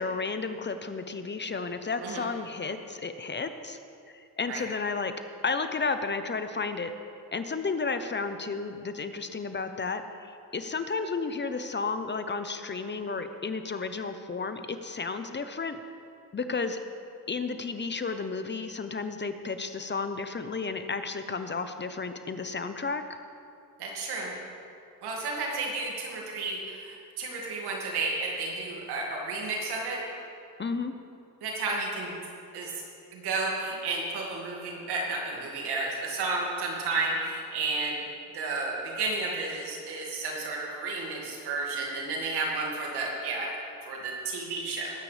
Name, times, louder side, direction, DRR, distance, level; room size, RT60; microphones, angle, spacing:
voice 1, 0.0-3.8 4.1-5.1 5.4-6.9 7.3-15.8 16.3-16.8 17.3-23.2 30.6-30.9, left 4 dB, 30° left, 9 dB, 0.9 m, -32 dB
voice 2, 23.8-24.3 25.0-30.0 31.4-32.1 32.5-32.7 33.1-38.0 38.3-43.5 43.8-44.9, right 3 dB, 85° right, -2 dB, 2.4 m, -32 dB
20.5 x 9.0 x 3.4 m, 2.5 s
cardioid pair, 70°, 38 cm